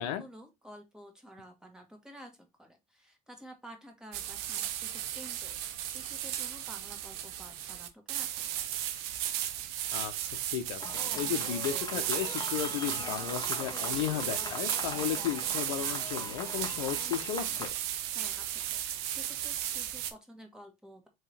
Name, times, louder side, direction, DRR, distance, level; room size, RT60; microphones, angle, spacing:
voice 1, 0.0-5.6 5.8-8.7 18.1-21.1, equal, 5° right, 1.6 m, -51 dB
sound 1, 4.1-20.1, right 11 dB, 70° right, 0.7 m, -35 dB
Fireworks, 10.8-17.7, left 2 dB, 25° left, 1.3 m, -41 dB
voice 2, 11.2-17.7, left 11 dB, 80° left, 0.7 m, -34 dB
3.7 x 3.1 x 4.2 m
hypercardioid pair, 75°, 17 cm